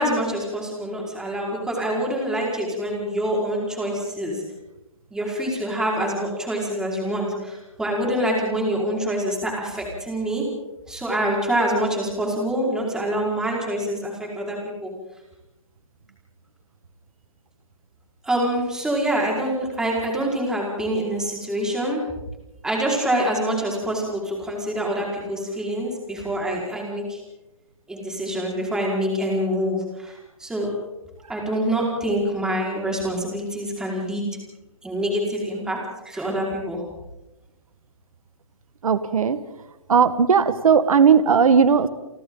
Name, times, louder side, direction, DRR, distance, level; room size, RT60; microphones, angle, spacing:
voice 1, 0.0-4.4 5.1-10.4 10.9-14.9 18.2-22.0 22.6-27.2 27.9-30.7 31.3-34.3 34.8-36.8, right 1 dB, 5° right, -2 dB, 5.1 m, -26 dB
voice 2, 38.8-39.4 39.9-41.9, right 6 dB, 85° right, 11 dB, 1.7 m, -17 dB
30.0 x 24.5 x 4.0 m, 0.97 s
hypercardioid pair, 165°, 18 cm